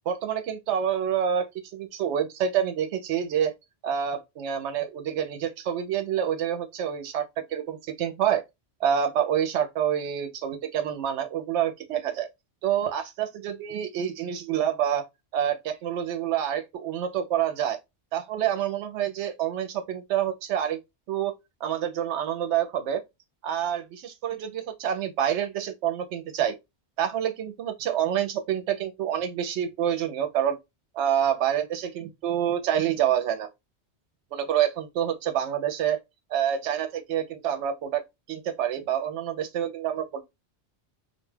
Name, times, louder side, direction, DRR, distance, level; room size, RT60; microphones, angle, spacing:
voice 1, 0.1-3.5 3.8-7.3 7.5-8.4 8.8-12.3 12.6-15.1 15.3-17.8 18.1-20.8 21.1-21.3 21.6-23.0 23.4-26.6 27.0-30.6 30.9-33.5 34.3-36.0 36.3-38.0 38.3-40.2, right 9 dB, 90° right, 0.9 m, -27 dB
2.4 x 2.2 x 3.2 m
omnidirectional pair, 1.1 m